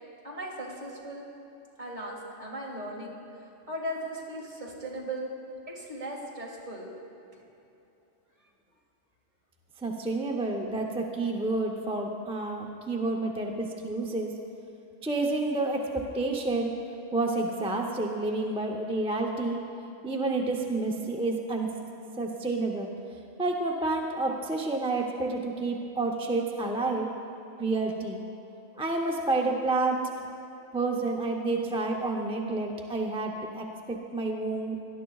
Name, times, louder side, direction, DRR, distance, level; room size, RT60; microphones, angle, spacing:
voice 1, 0.2-1.2 1.8-5.3 5.7-6.9 7.3-7.4, right 1 dB, 35° right, -3 dB, 2.1 m, -38 dB
voice 2, 9.8-14.3 15.0-16.8 17.1-19.6 20.0-21.7 22.2-22.9 23.4-27.1 27.6-28.2 28.8-30.0 30.7-34.8, right 2 dB, 10° right, 1 dB, 0.4 m, -29 dB
18.5 x 11.5 x 2.4 m, 2.9 s
omnidirectional pair, 1.3 m